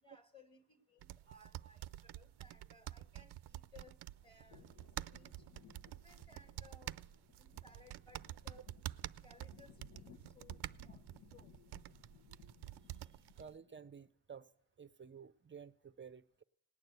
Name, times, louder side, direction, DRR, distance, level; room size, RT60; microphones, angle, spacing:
voice 1, 0.0-4.6 5.1-5.3 6.0-7.0 7.4-8.7 9.2-10.6 10.8-11.0 11.3-11.5, left 3 dB, 15° left, 1.5 m, -63 dB
sound 1, 1.0-13.5, right 14 dB, 75° right, 0.5 m, -49 dB
sound 2, 3.5-13.9, left 8 dB, 80° left, 1.3 m, -63 dB
voice 2, 12.9-14.5 14.8-16.4, right 6 dB, 30° right, 0.5 m, -54 dB
18.5 x 9.3 x 8.0 m
cardioid pair, 90°, 40 cm